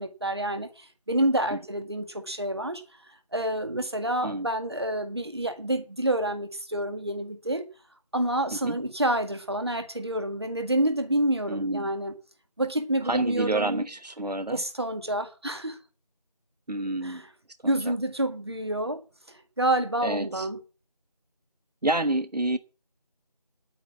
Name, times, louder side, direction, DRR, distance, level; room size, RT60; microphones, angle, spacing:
voice 1, 0.0-2.8 3.3-7.7 8.1-12.1 12.6-13.9 14.5-15.8 17.0-17.3 17.7-19.0 19.6-20.6, right 1 dB, 40° right, 1.9 m, -28 dB
voice 2, 11.5-11.9 13.0-14.6 16.7-17.2 17.6-17.9 20.0-20.5 21.8-22.6, right 2 dB, 80° right, 1.1 m, -28 dB
10.0 x 9.1 x 7.2 m
figure-of-eight pair, 175°, 21 cm